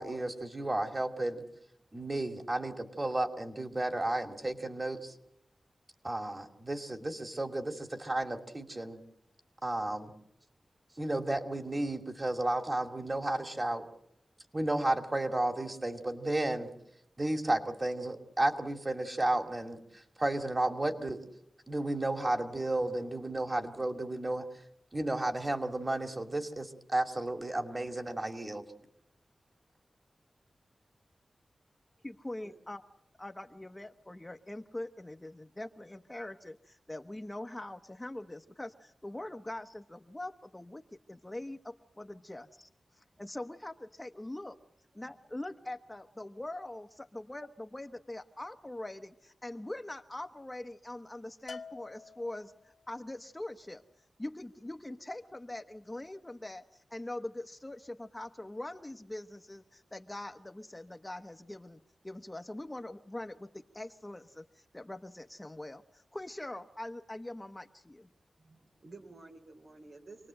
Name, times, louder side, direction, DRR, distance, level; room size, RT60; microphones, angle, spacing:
voice 1, 0.0-1.4 1.9-5.1 6.0-9.0 9.6-10.1 11.0-13.8 14.5-16.7 17.2-21.2 21.7-24.5 24.9-28.6, right 2 dB, 30° right, 6 dB, 2.7 m, -33 dB
voice 2, 32.0-32.8 33.2-40.8 41.1-42.7 43.0-44.6 44.9-53.8 54.2-68.1, left 1 dB, 20° left, 6 dB, 1.0 m, -43 dB
Bell, 51.5-52.8, left 4 dB, 75° left, 1.6 m, -48 dB
voice 3, 68.4-70.3, right 3 dB, 70° right, 4 dB, 3.6 m, -52 dB
27.0 x 19.5 x 7.7 m, 0.76 s
cardioid pair, 65°, 0 cm